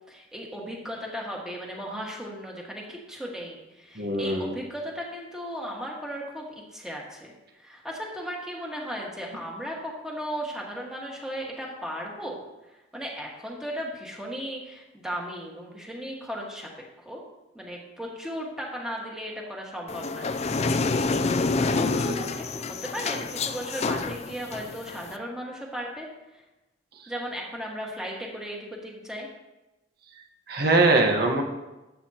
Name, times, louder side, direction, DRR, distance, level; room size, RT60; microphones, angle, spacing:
voice 1, 0.0-6.4 6.7-17.2 17.5-26.1 27.1-29.3, equal, 5° right, -2 dB, 1.6 m, -36 dB
voice 2, 4.0-4.6 30.5-31.4, right 2 dB, 55° right, 2 dB, 1.3 m, -22 dB
sound 1, 19.9-25.1, left 3 dB, 35° left, 0.4 m, -28 dB
12.5 x 8.2 x 2.9 m, 1.0 s
head